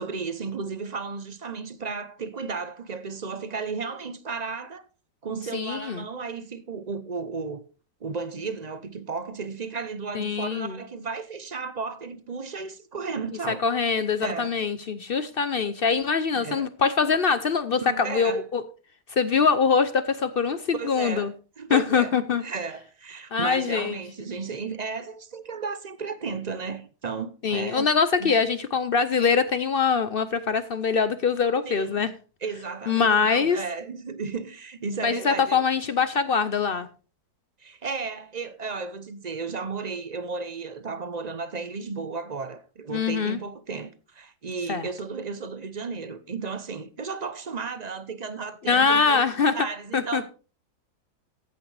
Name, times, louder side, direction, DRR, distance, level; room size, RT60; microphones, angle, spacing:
voice 1, 0.0-4.8 5.2-7.6 8.0-13.6 14.2-14.5 16.3-16.7 17.8-18.4 20.7-21.3 21.6-22.1 22.4-27.9 28.2-28.3 31.6-32.1 32.4-35.7 37.6-49.2 49.5-50.3, right 4 dB, 40° right, 0.6 m, -34 dB
voice 2, 5.5-6.0 10.1-10.8 13.5-18.6 19.1-21.3 21.7-22.4 23.3-24.0 27.4-32.1 32.9-33.6 35.0-36.9 42.9-43.4 44.7-44.9 48.7-49.7 49.9-50.3, left 5 dB, 55° left, 0.6 m, -23 dB
14.5 x 8.7 x 3.3 m
omnidirectional pair, 1.7 m